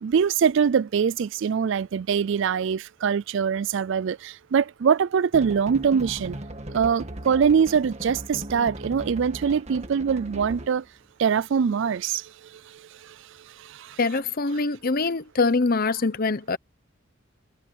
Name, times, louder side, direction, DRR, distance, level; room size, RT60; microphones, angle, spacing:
voice 1, 0.0-6.4 6.7-10.8 11.2-12.2, right 6 dB, 60° right, 0.4 m, -23 dB
sound 1, 5.3-10.9, right 1 dB, 35° right, 1.7 m, -38 dB
voice 2, 14.0-16.6, left 3 dB, 45° left, 0.9 m, -24 dB
head